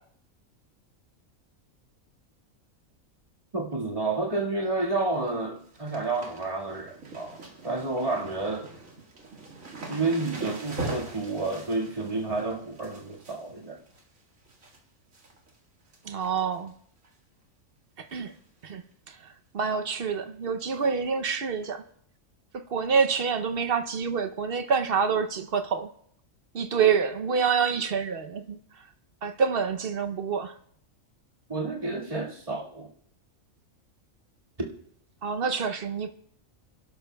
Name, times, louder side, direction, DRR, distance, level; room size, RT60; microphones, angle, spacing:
voice 1, 3.5-8.7 9.9-13.8 31.5-32.9 34.6-34.7, right 3 dB, 25° right, 1.9 m, -30 dB
sound 1, 5.3-5.4 5.6-14.8 15.1-15.6 15.9-16.7 17.0-17.1 18.1-18.4 18.6-18.7 19.1-19.2 20.8-20.9 21.6-21.7, right 2 dB, 75° right, 2.3 m, -42 dB
voice 2, 16.1-16.7 18.1-18.3 18.6-18.8 19.5-21.8 22.7-25.9 26.5-28.6 29.2-30.5 35.2-36.1, right 6 dB, 55° right, 0.8 m, -27 dB
28.0 x 11.5 x 2.3 m
omnidirectional pair, 1.4 m